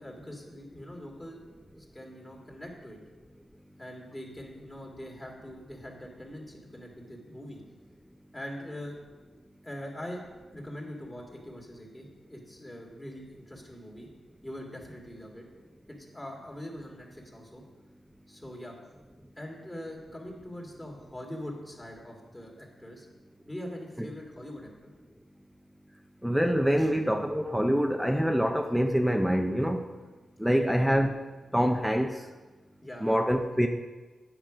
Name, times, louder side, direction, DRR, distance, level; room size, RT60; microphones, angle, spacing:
voice 1, 0.0-1.4 1.8-3.0 3.8-7.6 8.3-9.0 9.6-10.2 10.5-14.1 14.4-15.4 15.9-17.6 18.3-18.8 19.4-23.1 23.5-24.9 26.8-26.9 30.5-30.7 32.8-33.1, left 1 dB, 20° left, -1 dB, 2.1 m, -43 dB
voice 2, 26.2-29.8 30.4-31.2 31.5-32.2 33.0-33.7, equal, ahead, 4 dB, 0.6 m, -25 dB
9.1 x 5.8 x 5.0 m, 1.3 s
cardioid pair, 65°, 0 cm